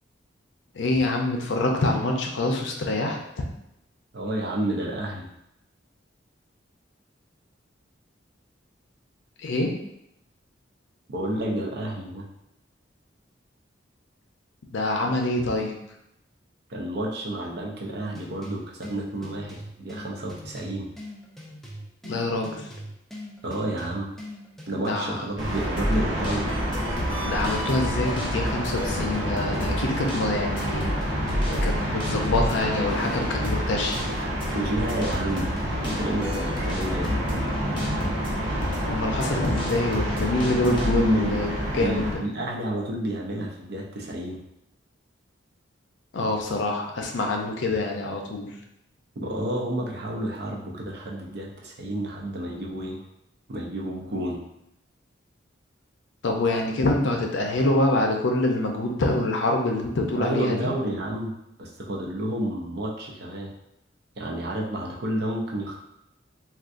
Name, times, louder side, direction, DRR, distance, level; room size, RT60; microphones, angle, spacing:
voice 1, 0.7-3.4 9.4-9.7 14.7-15.7 22.0-22.7 24.8-25.2 27.2-30.9 31.5-34.0 38.8-42.2 46.1-48.5 56.2-60.7, left 2 dB, 75° left, 2 dB, 0.5 m, -26 dB
voice 2, 4.1-5.3 11.1-12.3 16.7-20.9 23.4-24.1 24.7-26.5 34.5-35.5 35.8-37.2 40.7-41.4 41.8-44.4 49.2-53.0 53.5-54.4 60.1-63.5 64.2-65.8, right 1 dB, 60° right, 0 dB, 0.5 m, -30 dB
sound 1, 18.1-37.5, equal, ahead, 0.4 m, -42 dB
sound 2, 25.4-42.2, equal, 80° right, 0.9 m, -29 dB
sound 3, 25.8-41.1, left 1 dB, 25° left, 0.8 m, -32 dB
3.6 x 2.4 x 2.5 m, 0.83 s
head